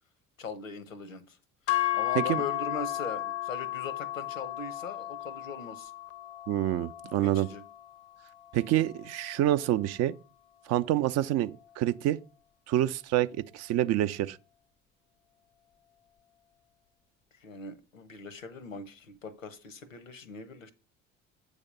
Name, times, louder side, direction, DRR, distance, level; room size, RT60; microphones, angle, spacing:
voice 1, 0.4-1.4 1.9-5.9 7.2-7.6 17.4-20.7, left 4 dB, 85° left, 0.8 m, -40 dB
sound 1, 1.7-9.9, left 15 dB, 35° left, 0.5 m, -35 dB
voice 2, 6.5-7.5 8.5-10.1 10.7-11.5 11.8-12.2 12.7-14.4, right 13 dB, 45° right, 0.5 m, -27 dB
8.1 x 3.5 x 5.1 m
figure-of-eight pair, 60°, 39 cm